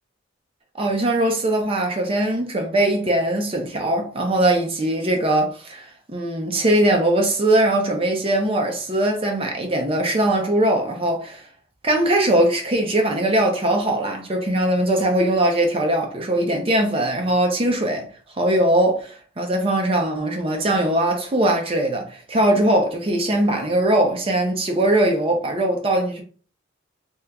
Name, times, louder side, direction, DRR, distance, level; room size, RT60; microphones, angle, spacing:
voice 1, 0.7-11.5 11.8-18.1 18.4-26.2, right 1 dB, 25° right, 0.5 m, -21 dB
2.9 x 2.3 x 3.4 m
head